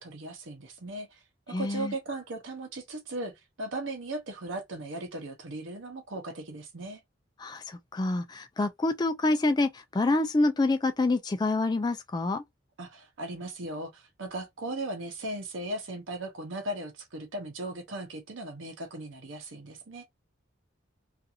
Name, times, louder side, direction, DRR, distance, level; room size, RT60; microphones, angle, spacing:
voice 1, 0.0-7.0 12.8-20.1, right 1 dB, 85° right, 0.8 m, -37 dB
voice 2, 1.5-1.9 7.4-12.4, left 2 dB, 20° left, 0.3 m, -27 dB
2.5 x 2.4 x 2.7 m
head